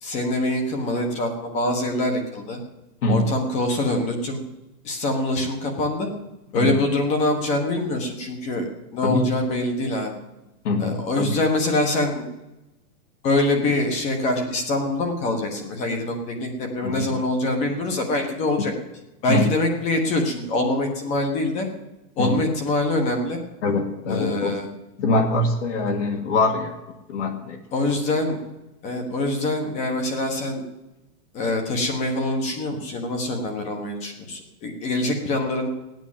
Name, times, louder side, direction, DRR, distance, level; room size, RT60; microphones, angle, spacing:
voice 1, 0.0-2.6 3.1-4.4 4.8-6.1 6.5-10.1 10.8-12.3 13.2-18.7 19.2-21.7 22.2-23.4 24.1-24.7 27.7-28.4 28.8-30.6 31.3-35.7, left 2 dB, 15° left, 4 dB, 1.3 m, -24 dB
voice 2, 3.0-3.3 6.5-6.8 9.0-9.3 10.6-11.4 16.8-17.1 19.3-19.5 22.2-22.4 23.6-24.5 25.0-26.8 27.1-27.6, left 2 dB, 50° left, 4 dB, 2.0 m, -23 dB
16.0 x 9.2 x 7.4 m, 0.99 s
hypercardioid pair, 170°, 48 cm